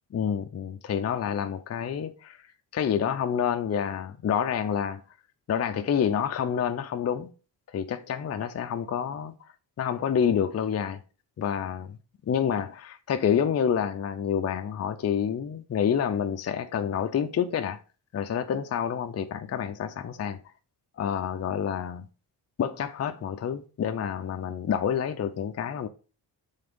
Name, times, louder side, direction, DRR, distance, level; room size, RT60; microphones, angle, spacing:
voice 1, 0.1-2.4 2.7-5.0 5.5-7.3 7.7-9.3 9.8-11.0 11.4-12.0 12.3-17.8 18.1-20.4 21.0-22.0 22.6-25.9, left 8 dB, 35° left, 0.5 m, -28 dB
5.6 x 3.5 x 5.2 m
wide cardioid pair, 115°, 42 cm